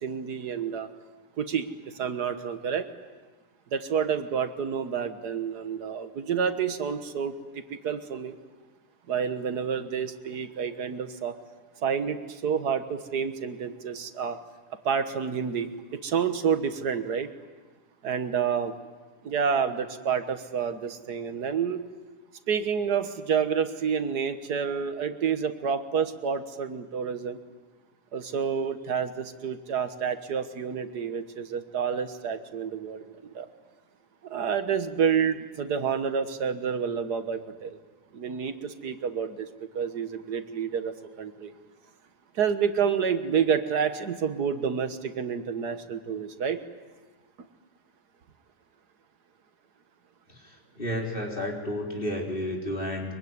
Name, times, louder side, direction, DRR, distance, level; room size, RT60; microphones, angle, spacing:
voice 1, 0.0-0.9 1.4-2.9 3.7-8.3 9.1-11.4 11.8-14.4 14.9-17.3 18.0-18.7 19.2-21.8 22.5-27.4 28.1-33.5 34.2-37.8 38.1-41.5 42.4-46.6, right 7 dB, 85° right, 9 dB, 1.9 m, -29 dB
voice 2, 50.3-53.1, left 1 dB, 35° left, -1 dB, 4.1 m, -32 dB
23.5 x 23.5 x 9.6 m, 1.3 s
omnidirectional pair, 1.7 m